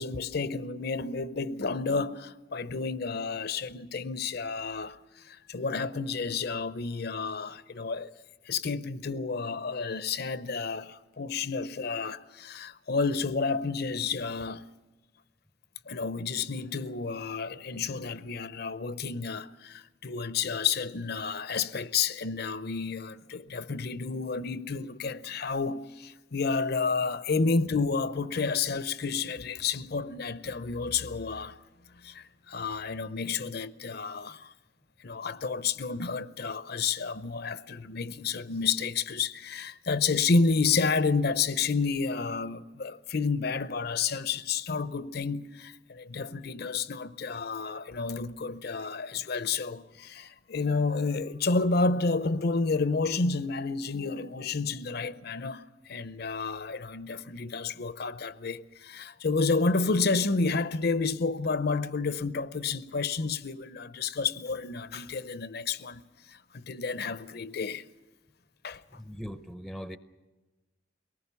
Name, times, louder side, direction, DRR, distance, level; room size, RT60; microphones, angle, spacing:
voice 1, 0.0-5.0 5.2-8.1 8.5-14.7 15.9-31.6 32.0-34.5 35.0-66.0 66.3-67.8 68.6-68.8, left 4 dB, 55° left, 0.7 m, -30 dB
voice 2, 68.9-70.0, equal, ahead, 0.6 m, -40 dB
22.5 x 19.0 x 6.9 m
head